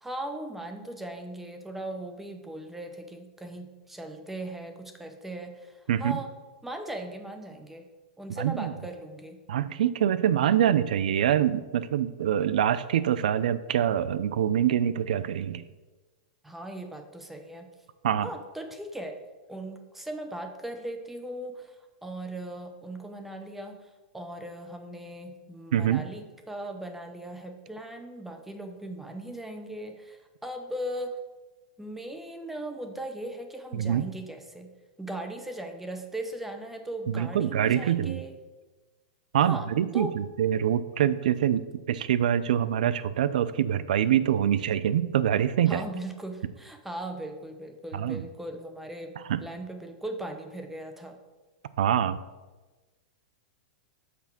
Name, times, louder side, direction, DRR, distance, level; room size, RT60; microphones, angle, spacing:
voice 1, 0.0-6.3 6.6-7.8 8.2-9.4 16.4-17.7 18.2-19.2 19.5-23.9 24.1-31.2 31.8-34.7 35.0-38.3 39.4-40.2 45.7-49.1 49.4-51.2, right 1 dB, 5° right, 5 dB, 0.7 m, -38 dB
voice 2, 5.9-6.2 8.4-8.7 9.5-15.6 18.0-18.3 25.7-26.1 33.7-34.1 37.1-38.2 39.3-45.8 47.9-48.2 49.2-49.4 51.8-52.2, right 10 dB, 80° right, 15 dB, 0.4 m, -25 dB
5.9 x 4.3 x 6.1 m, 1.2 s
supercardioid pair, 145°, 4 cm